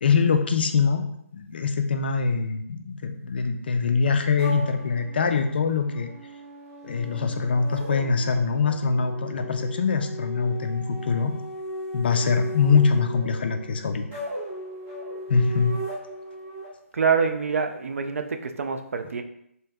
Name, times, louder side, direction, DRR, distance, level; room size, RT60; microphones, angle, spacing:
voice 1, 0.0-1.1 1.3-6.1 6.8-11.3 11.9-14.2 15.3-15.7, left 5 dB, 40° left, 7 dB, 0.4 m, -23 dB
sound 1, 4.4-16.7, equal, 15° right, 0.6 m, -37 dB
voice 2, 16.9-19.2, right 5 dB, 65° right, 7 dB, 0.4 m, -25 dB
3.0 x 2.8 x 3.4 m, 0.74 s
hypercardioid pair, 165°, 8 cm